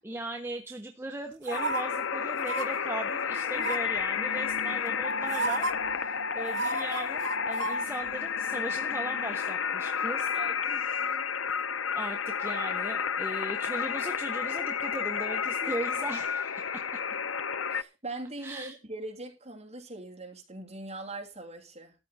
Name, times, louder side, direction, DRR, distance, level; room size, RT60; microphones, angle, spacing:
voice 1, 0.0-10.3 10.9-11.1 11.9-16.8 18.4-18.8, right 2 dB, 10° right, 1.0 m, -38 dB
sound 1, 1.4-1.8 2.4-2.7 3.6-4.0 4.9-5.0 5.3-5.7 6.5-7.7 8.1-8.2, right 3 dB, 65° right, 0.9 m, -32 dB
sound 2, 1.5-17.8, left 6 dB, 85° left, 0.7 m, -31 dB
voice 2, 3.3-3.7 10.3-11.3 15.6-15.9 17.7-21.9, right 2 dB, 35° right, 3.0 m, -42 dB
13.5 x 9.3 x 4.1 m
head